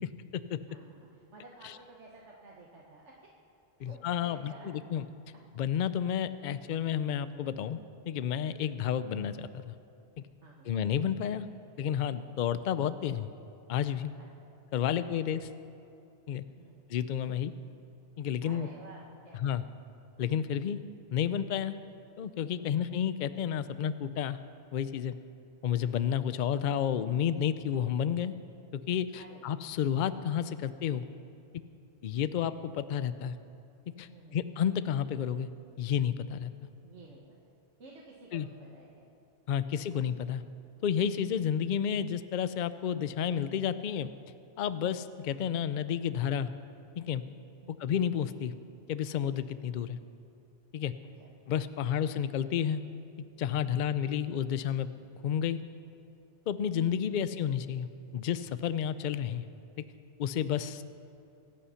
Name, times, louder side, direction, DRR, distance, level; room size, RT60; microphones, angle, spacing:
voice 1, 0.7-3.2 3.8-4.8 5.3-5.4 8.6-8.8 10.4-10.8 12.3-12.4 14.2-14.3 15.0-15.1 16.5-16.9 18.4-19.6 22.6-22.8 26.3-26.4 29.1-29.5 34.1-34.5 36.8-37.5 37.8-39.1 47.6-47.9 51.0-51.5 51.9-52.0 53.7-54.1, right 2 dB, 75° right, -3 dB, 1.6 m, -53 dB
voice 2, 3.8-5.1 5.6-7.8 8.1-9.8 10.2-10.3 10.7-11.4 11.8-13.3 13.7-14.1 14.7-15.4 16.3-16.4 16.9-17.5 18.2-18.7 19.4-19.6 20.2-20.8 21.1-21.8 22.2-24.4 24.7-25.2 25.6-28.3 28.7-31.0 32.0-33.3 34.0-35.5 35.8-36.5 38.3-38.5 39.5-40.4 40.8-44.1 44.6-46.5 47.0-47.2 47.8-48.5 48.9-50.0 50.7-50.9 51.5-52.8 53.4-54.9 55.2-55.6 56.5-57.9 58.1-59.4 60.2-60.8, left 9 dB, 55° left, 13 dB, 0.6 m, -31 dB
23.5 x 8.6 x 5.7 m, 2.6 s
omnidirectional pair, 1.2 m